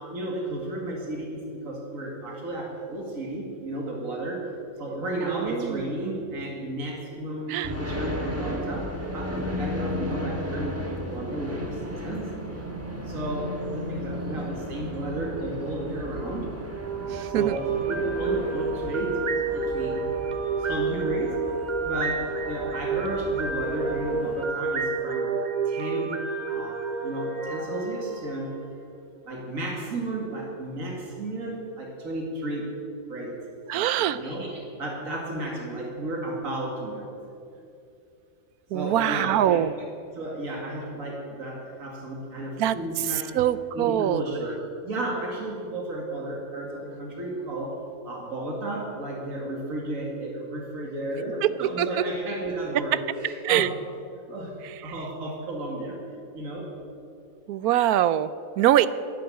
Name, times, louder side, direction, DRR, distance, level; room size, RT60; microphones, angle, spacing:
voice 1, 0.0-4.5 4.8-12.3 13.0-16.5 17.3-19.2 19.5-20.0 20.6-21.4 21.8-25.3 25.7-28.5 29.3-32.8 33.1-33.4 33.7-37.2 38.7-39.8 40.1-43.3 43.7-53.7 54.3-54.6 54.8-56.7, right 1 dB, 65° right, -1 dB, 2.7 m, -33 dB
voice 2, 5.2-5.8 6.1-6.2 7.5-7.7 17.1-17.6 33.7-34.2 38.7-39.7 42.6-42.8 43.3-44.2 51.4-51.9 53.4-53.7 57.5-58.9, right 12 dB, 85° right, 15 dB, 1.1 m, -23 dB
sound 1, 7.6-24.5, equal, 10° right, 1.5 m, -35 dB
sound 2, 16.7-28.8, right 4 dB, 35° right, 0.9 m, -29 dB
11.5 x 11.0 x 8.9 m, 2.5 s
omnidirectional pair, 1.5 m